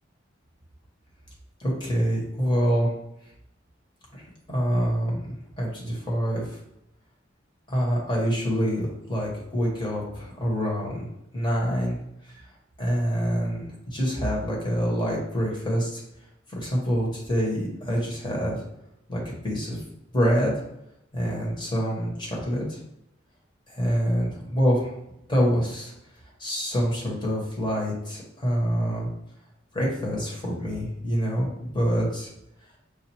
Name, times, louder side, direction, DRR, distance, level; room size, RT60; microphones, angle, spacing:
voice 1, 1.6-2.9 4.1-4.2 4.5-6.4 7.7-11.0 11.3-12.0 12.8-13.6 13.9-16.0 16.5-18.6 19.1-19.8 20.1-20.5 21.1-22.8 23.7-24.9 25.3-25.9 26.4-29.1 29.7-32.3, equal, 25° left, -4 dB, 1.4 m, -26 dB
6.7 x 2.6 x 3.0 m, 0.82 s
head